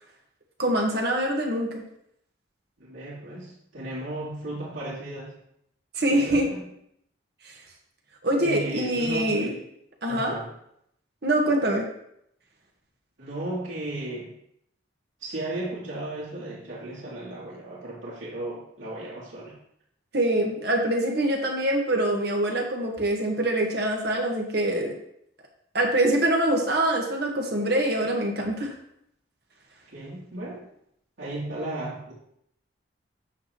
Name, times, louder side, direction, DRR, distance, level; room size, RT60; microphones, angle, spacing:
voice 1, 0.6-1.8 5.9-6.5 7.4-7.5 8.2-9.5 10.0-10.4 11.2-11.9 20.1-24.9 25.7-28.7, right 1 dB, 55° right, 0 dB, 1.5 m, -24 dB
voice 2, 2.8-5.4 6.1-6.4 8.3-9.6 10.1-10.5 13.2-14.3 15.2-19.6 29.9-30.6 31.2-32.1, right 1 dB, 75° right, -8 dB, 3.0 m, -35 dB
8.9 x 7.6 x 3.0 m, 0.74 s
head